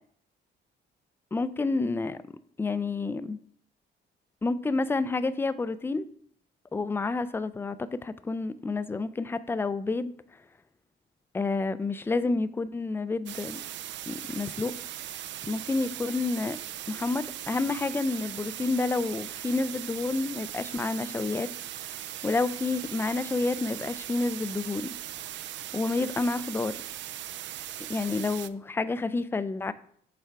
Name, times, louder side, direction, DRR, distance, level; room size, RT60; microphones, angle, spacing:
voice 1, 1.3-2.2 2.6-3.4 4.4-6.1 6.7-10.1 11.3-13.6 14.1-14.7 15.4-16.6 16.9-21.5 22.2-24.9 25.7-26.8 27.9-29.7, left 3 dB, 10° left, 14 dB, 0.3 m, -29 dB
sound 1, 13.3-28.5, right 12 dB, 65° right, 0.4 m, -39 dB
7.2 x 3.3 x 4.6 m, 0.62 s
cardioid pair, 90°, 20 cm